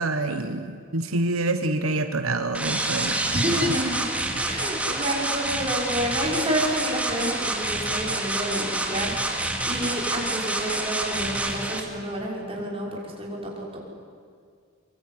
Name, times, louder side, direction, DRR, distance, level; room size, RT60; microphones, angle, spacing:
voice 1, 0.0-3.4, right 2 dB, 85° right, 8 dB, 1.2 m, -27 dB
sound 1, 2.5-11.8, right 2 dB, 5° right, 2.5 m, -28 dB
voice 2, 3.3-13.8, equal, 25° right, -2 dB, 6.0 m, -29 dB
24.5 x 23.5 x 9.7 m, 2.1 s
head